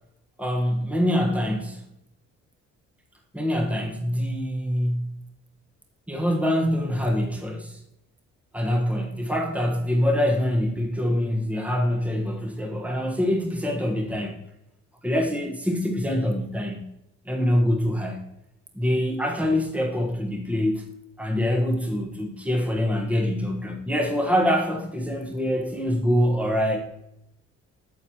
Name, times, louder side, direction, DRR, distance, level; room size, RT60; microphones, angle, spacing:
voice 1, 0.4-1.8 3.3-5.2 6.1-7.8 8.5-14.4 15.0-16.9 17.2-18.3 18.7-20.8 21.2-26.8, equal, 5° right, 1 dB, 1.3 m, -25 dB
9.2 x 7.7 x 2.9 m, 0.82 s
cardioid pair, 90°, 30 cm